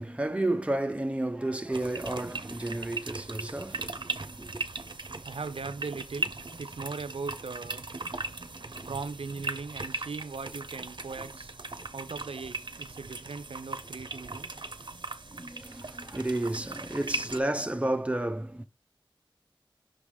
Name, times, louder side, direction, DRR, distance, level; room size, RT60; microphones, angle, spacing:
voice 1, 0.0-4.6 15.3-18.6, right 1 dB, 15° right, 0.7 m, -32 dB
sound 1, 1.7-17.4, right 2 dB, 55° right, 0.7 m, -38 dB
voice 2, 5.2-6.3 6.6-7.8 8.8-11.5 11.9-14.5, right 4 dB, 85° right, 0.5 m, -39 dB
6.1 x 4.8 x 3.5 m
wide cardioid pair, 60°, 9 cm